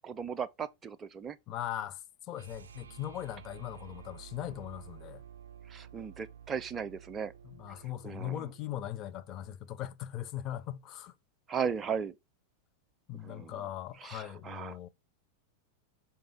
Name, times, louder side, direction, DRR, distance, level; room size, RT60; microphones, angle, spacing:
voice 1, 0.0-1.4 5.7-7.3 8.0-8.5 11.5-12.2 13.2-13.7 14.0-14.8, right 7 dB, 20° right, 0.5 m, -37 dB
voice 2, 1.5-2.0 2.3-5.2 7.4-11.1 13.1-14.9, left 12 dB, 35° left, 0.6 m, -39 dB
sound 1, 2.3-8.7, right 8 dB, 65° right, 0.5 m, -52 dB
5.8 x 5.2 x 3.5 m
figure-of-eight pair, 90°, 0 cm